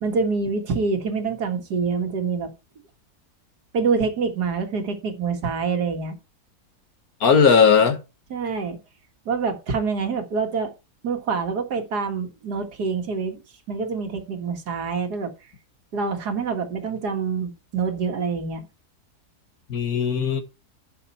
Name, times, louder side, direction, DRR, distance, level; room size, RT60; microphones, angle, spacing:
voice 1, 0.0-2.5 3.7-6.1 8.3-8.8 9.3-10.7 11.0-13.4 13.7-15.3 15.9-18.7, right 5 dB, 85° right, 2.2 m, -26 dB
voice 2, 7.2-8.0 19.7-20.4, left 6 dB, 65° left, 1.9 m, -17 dB
11.0 x 6.7 x 4.3 m
omnidirectional pair, 1.7 m